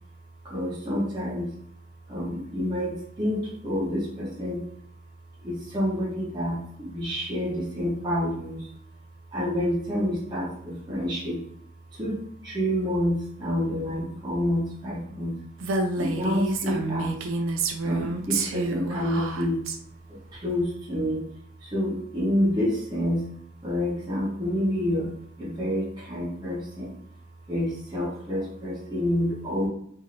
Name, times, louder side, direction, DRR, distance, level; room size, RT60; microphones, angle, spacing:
voice 1, 0.4-1.5 2.1-4.6 5.4-8.7 9.3-11.4 11.9-15.4 16.0-17.1 17.8-19.6 20.1-21.2 21.6-23.3 23.6-25.1 25.4-27.0 27.5-29.7, equal, 20° right, -8 dB, 0.9 m, -28 dB
Female speech woman speaking, 15.6-19.8, right 3 dB, 75° right, 0.4 m, -28 dB
3.0 x 2.7 x 2.5 m, 0.70 s
head